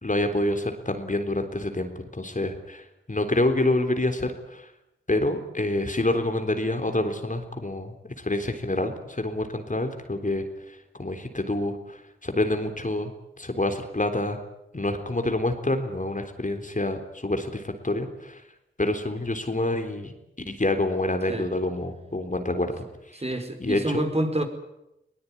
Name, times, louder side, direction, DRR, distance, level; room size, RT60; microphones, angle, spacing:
voice 1, 0.0-4.7 5.1-13.1 13.4-14.4 14.7-18.4 18.8-20.1 20.5-22.7 23.1-23.2 23.6-24.0, left 2 dB, 40° left, 6 dB, 3.8 m, -27 dB
voice 2, 23.2-24.4, right 1 dB, 30° right, 6 dB, 5.1 m, -27 dB
21.5 x 19.0 x 9.9 m, 0.86 s
cardioid pair, 40°, 20 cm